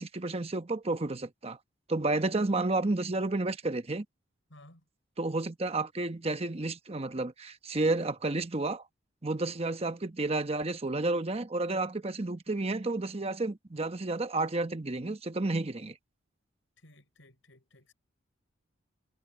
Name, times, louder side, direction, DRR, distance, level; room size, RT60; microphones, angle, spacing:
voice 1, 0.0-1.6 1.9-4.0 5.2-8.8 9.2-16.0, right 2 dB, 30° right, 1.0 m, -31 dB
voice 2, 4.5-4.8 16.8-17.9, left 1 dB, 85° left, 5.9 m, -57 dB
head